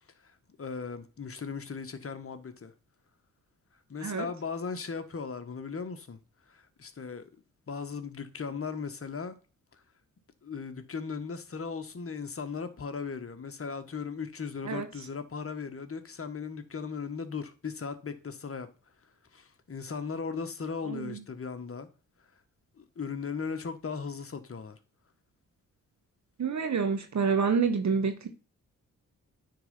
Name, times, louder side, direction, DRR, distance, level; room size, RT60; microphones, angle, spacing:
voice 1, 0.2-2.7 3.9-6.2 6.5-7.3 7.7-9.4 10.4-18.7 19.3-21.9 22.8-24.8, left 5 dB, 40° left, 1.4 m, -37 dB
voice 2, 20.9-21.2 26.4-28.3, right 5 dB, 50° right, 1.4 m, -28 dB
9.2 x 3.9 x 5.6 m
hypercardioid pair, 40°, 36 cm